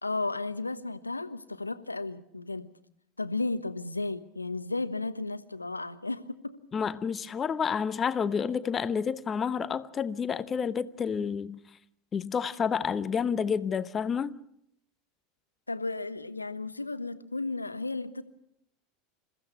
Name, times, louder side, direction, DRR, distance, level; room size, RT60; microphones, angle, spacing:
voice 1, 0.0-2.7 3.2-6.6 15.7-18.2, left 3 dB, 85° left, 1.1 m, -34 dB
voice 2, 6.7-11.6 12.1-14.4, left 6 dB, 25° left, 0.9 m, -29 dB
28.5 x 15.5 x 7.0 m
figure-of-eight pair, 80°, 0 cm